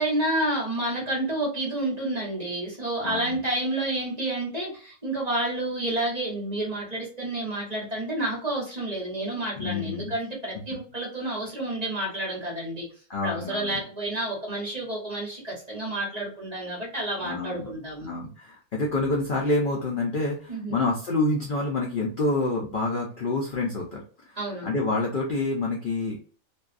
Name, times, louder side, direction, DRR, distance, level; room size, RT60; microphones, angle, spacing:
voice 1, 0.0-12.9 13.2-18.1 20.5-20.8 24.4-24.7, right 1 dB, 30° right, 1.1 m, -29 dB
voice 2, 3.0-3.4 9.6-10.1 13.1-13.8 17.2-17.7 18.0-24.4 24.6-26.2, left 2 dB, 60° left, 0.5 m, -27 dB
2.6 x 2.3 x 2.5 m
omnidirectional pair, 1.5 m